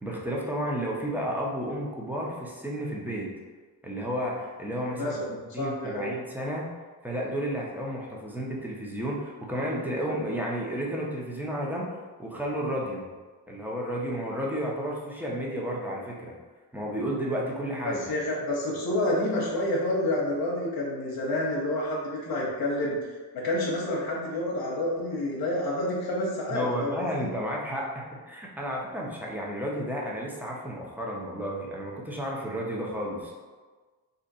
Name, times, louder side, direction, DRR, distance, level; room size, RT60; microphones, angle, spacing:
voice 1, 0.0-3.3 3.8-5.1 5.5-6.7 7.0-11.9 12.2-13.0 13.5-16.3 16.7-18.1 26.5-33.3, equal, 5° right, -3 dB, 0.7 m, -32 dB
voice 2, 4.9-6.1 17.8-27.3, left 1 dB, 55° left, -3 dB, 0.9 m, -29 dB
2.7 x 2.4 x 4.0 m, 1.4 s
supercardioid pair, 80°, 44 cm